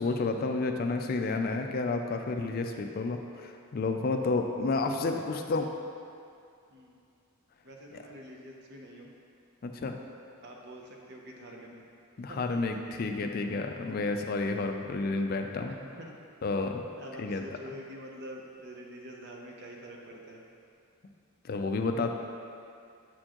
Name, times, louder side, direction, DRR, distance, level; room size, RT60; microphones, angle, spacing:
voice 1, 0.0-5.7 7.9-8.0 9.6-10.0 12.2-15.8 16.4-16.9 17.2-17.4 21.4-22.1, left 3 dB, 45° left, 5 dB, 0.4 m, -30 dB
voice 2, 7.6-9.1 9.9-10.0 10.4-11.8 12.3-12.6 16.0-16.1 17.0-20.4, equal, 50° right, 0 dB, 0.7 m, -46 dB
7.5 x 4.4 x 2.9 m, 2.4 s
head